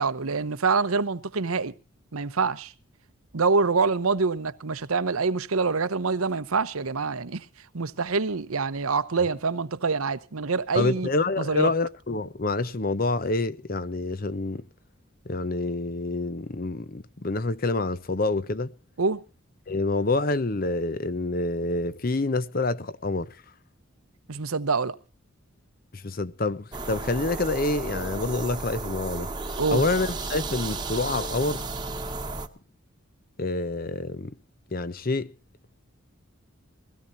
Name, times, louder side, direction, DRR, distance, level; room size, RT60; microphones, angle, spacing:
voice 1, 0.0-1.7 2.1-2.7 3.3-7.4 7.7-11.1 11.4-11.7 19.0-19.2 24.3-25.0 29.6-29.8, right 4 dB, 85° right, 0.9 m, -25 dB
voice 2, 10.7-14.6 15.3-18.7 19.7-23.3 25.9-29.3 29.7-31.6 33.4-34.3 34.7-35.3, left 2 dB, 45° left, 0.7 m, -27 dB
sound 1, 26.7-32.5, right 3 dB, 20° right, 1.2 m, -33 dB
22.5 x 16.5 x 2.7 m
head